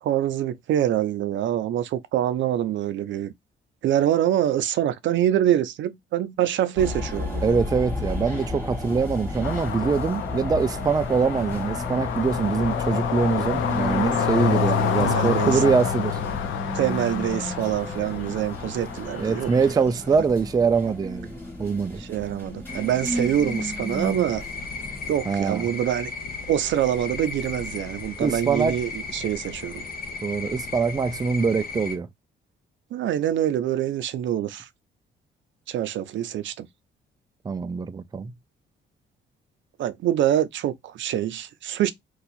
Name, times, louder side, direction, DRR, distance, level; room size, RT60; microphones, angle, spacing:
voice 1, 0.0-3.3 3.8-7.6 14.3-14.6 15.0-15.6 16.7-19.5 22.0-24.4 25.1-26.1 26.5-29.8 32.9-34.7 35.7-36.7 39.8-41.9, right 11 dB, 70° right, 0.5 m, -25 dB
sound 1, 6.8-25.1, left 1 dB, 10° left, 1.6 m, -33 dB
voice 2, 7.4-16.2 19.2-21.3 21.6-22.0 25.3-25.7 28.2-28.8 30.2-32.1 37.4-38.3, right 5 dB, 20° right, 0.4 m, -23 dB
sound 2, 9.4-19.7, left 8 dB, 80° left, 0.6 m, -28 dB
sound 3, 22.7-32.0, left 4 dB, 50° left, 0.8 m, -36 dB
2.7 x 2.3 x 4.1 m
cardioid pair, 90°, 20 cm